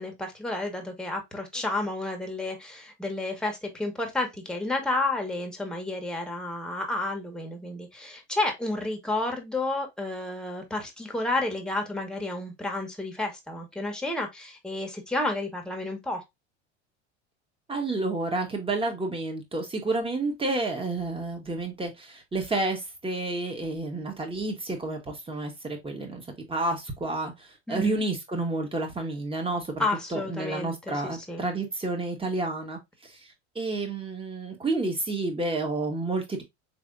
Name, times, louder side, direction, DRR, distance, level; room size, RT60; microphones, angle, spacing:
voice 1, 0.0-16.2 27.7-28.0 29.8-31.4, left 2 dB, ahead, 1.3 m, -31 dB
voice 2, 17.7-26.2 26.5-27.3 27.7-29.8 30.1-32.8 33.5-36.4, right 2 dB, 15° right, 1.5 m, -30 dB
4.2 x 3.4 x 2.6 m
hypercardioid pair, 95°, 34 cm